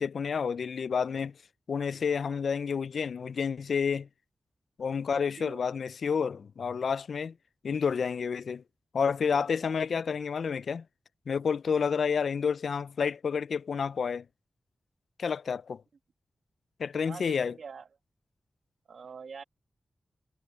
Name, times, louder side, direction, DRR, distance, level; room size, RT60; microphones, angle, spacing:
voice 1, 0.0-1.3 1.7-4.1 4.8-7.3 7.6-8.6 8.9-10.8 11.3-14.3 15.2-15.8 16.8-17.5, left 6 dB, 75° left, 0.3 m, -29 dB
voice 2, 9.3-9.8 17.0-17.9 18.9-19.4, right 5 dB, 75° right, 1.3 m, -45 dB
wide cardioid pair, 105°, 0 cm